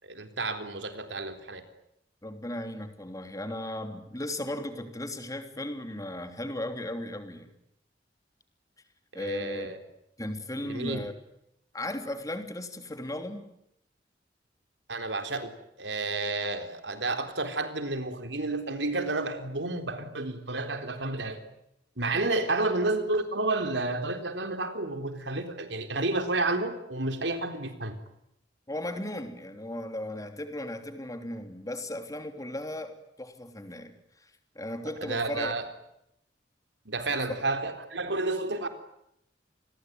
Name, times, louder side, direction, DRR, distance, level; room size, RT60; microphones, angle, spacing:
voice 1, 0.0-1.6 9.1-9.8 10.6-11.1 14.9-15.5 15.8-21.4 22.0-28.0 35.0-35.7 36.9-38.7, right 2 dB, 85° right, 7 dB, 3.8 m, -31 dB
voice 2, 2.2-7.5 9.1-9.7 10.2-11.1 11.7-13.5 28.7-33.9 34.2-34.3 34.5-35.5, left 1 dB, 20° left, 7 dB, 3.2 m, -36 dB
28.5 x 21.5 x 9.5 m, 0.79 s
head